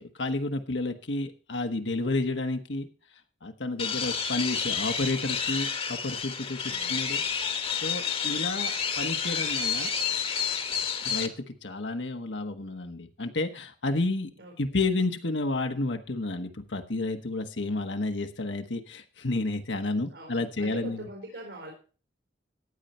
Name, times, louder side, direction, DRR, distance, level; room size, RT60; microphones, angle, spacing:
voice 1, 0.0-2.9 3.4-7.2 7.8-9.9 11.0-14.3 14.6-21.0, left 2 dB, 80° left, 6 dB, 1.4 m, -31 dB
sound 1, 3.8-11.3, left 6 dB, 30° left, 1.2 m, -30 dB
voice 2, 6.7-7.2 14.4-14.6 20.1-21.7, right 1 dB, 85° right, 1 dB, 4.4 m, -43 dB
15.0 x 9.3 x 4.4 m, 0.37 s
head